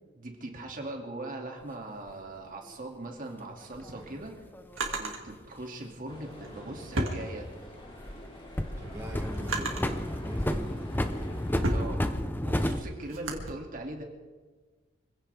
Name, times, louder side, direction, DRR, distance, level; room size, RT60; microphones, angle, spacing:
voice 1, 0.2-4.3 5.0-7.5 11.7-12.0 12.4-14.0, right 2 dB, 45° right, 1 dB, 2.5 m, -40 dB
sound 1, 2.1-2.2 3.7-5.0 7.2-8.2 8.6-12.8, left 1 dB, 10° left, 0.8 m, -31 dB
Drawer open or close, 3.6-5.2 6.2-7.9 8.3-10.0 10.7-13.5, right 2 dB, 85° right, 2.4 m, -36 dB
sound 2, 6.1-11.8, left 1 dB, 25° left, 3.6 m, -48 dB
voice 2, 8.8-10.9, equal, 15° right, -1 dB, 1.7 m, -43 dB
25.5 x 16.0 x 3.5 m, 1.4 s
head